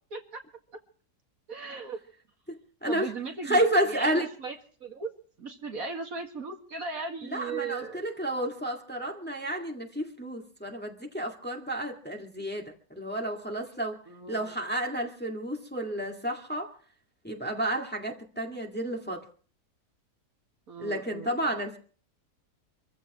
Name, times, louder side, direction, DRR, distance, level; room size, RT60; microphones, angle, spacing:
voice 1, 0.1-0.4 1.5-2.0 2.9-3.6 3.9-4.5 4.8-5.1 5.4-8.0 14.1-14.5 20.7-21.3, right 4 dB, 60° right, 4 dB, 2.4 m, -37 dB
voice 2, 2.5-3.1 3.4-4.3 7.2-14.0 14.3-16.7 17.2-19.2 20.8-21.8, right 1 dB, 5° left, 2 dB, 2.1 m, -31 dB
26.0 x 15.0 x 3.1 m, 0.41 s
omnidirectional pair, 1.7 m